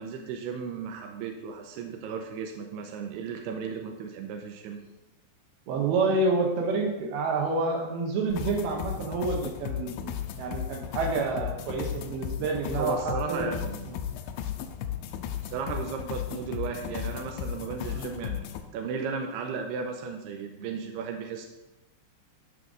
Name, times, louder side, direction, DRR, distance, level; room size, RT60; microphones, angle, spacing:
voice 1, 0.0-4.8 12.8-13.8 15.5-18.4 18.7-21.5, right 5 dB, 85° right, 3 dB, 2.4 m, -35 dB
voice 2, 5.7-13.5 13.9-14.0 17.9-18.0, right 3 dB, 70° right, 2 dB, 2.9 m, -28 dB
sound 1, 8.3-18.6, left 10 dB, 85° left, 2.9 m, -35 dB
12.5 x 5.8 x 3.8 m, 1.0 s
omnidirectional pair, 5.3 m